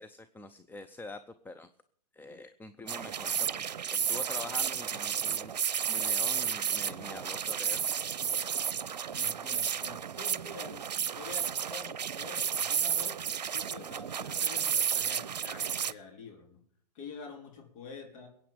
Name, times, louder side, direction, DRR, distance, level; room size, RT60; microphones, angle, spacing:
voice 1, 0.0-1.7 2.1-5.5 5.9-7.9, left 3 dB, 10° left, 10 dB, 0.7 m, -45 dB
sound 1, 2.9-15.9, right 8 dB, 80° right, 0.6 m, -32 dB
sound 2, 3.4-9.9, left 2 dB, 75° left, 5.6 m, -66 dB
voice 2, 9.1-10.8 11.2-13.2 13.5-16.6 16.9-18.3, left 4 dB, 50° left, 2 dB, 4.0 m, -47 dB
21.5 x 9.0 x 5.2 m, 0.66 s
hypercardioid pair, 110°, 21 cm